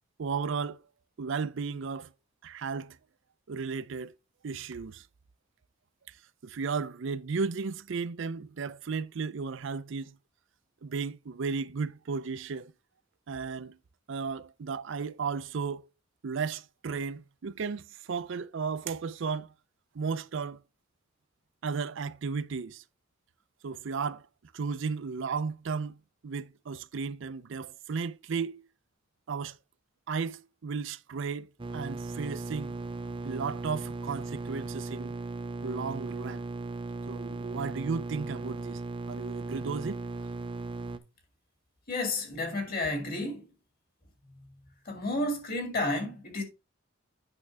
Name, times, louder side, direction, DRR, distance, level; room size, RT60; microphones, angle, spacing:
voice 1, 0.2-0.8 1.2-2.1 2.4-3.0 3.5-4.1 4.4-5.1 6.1-6.2 6.4-10.2 10.8-12.7 13.3-13.8 14.1-15.8 16.2-19.5 19.9-20.6 21.6-22.8 23.6-24.3 24.5-28.6 29.3-29.6 30.1-32.8 33.2-35.1 35.6-36.4 37.1-38.8 39.1-40.0, right 5 dB, 65° right, 0.5 m, -34 dB
sound 1, 31.6-41.0, right 2 dB, 25° right, 0.6 m, -37 dB
voice 2, 41.9-43.5 44.9-46.4, left 2 dB, 50° left, 2.3 m, -31 dB
8.8 x 5.9 x 3.4 m
head